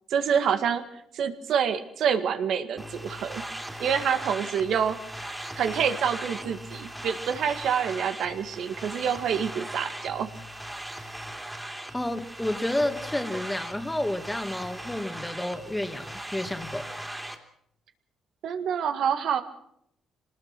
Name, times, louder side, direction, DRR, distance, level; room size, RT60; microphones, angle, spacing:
voice 1, 0.1-0.8 1.1-3.4 3.8-10.3 18.4-19.4, right 7 dB, 70° right, 8 dB, 1.8 m, -27 dB
sound 1, 2.8-17.4, right 1 dB, 10° right, 3.0 m, -39 dB
voice 2, 11.9-16.9, left 1 dB, 10° left, 8 dB, 2.0 m, -30 dB
23.5 x 19.5 x 6.1 m, 0.72 s
cardioid pair, 90°, 0 cm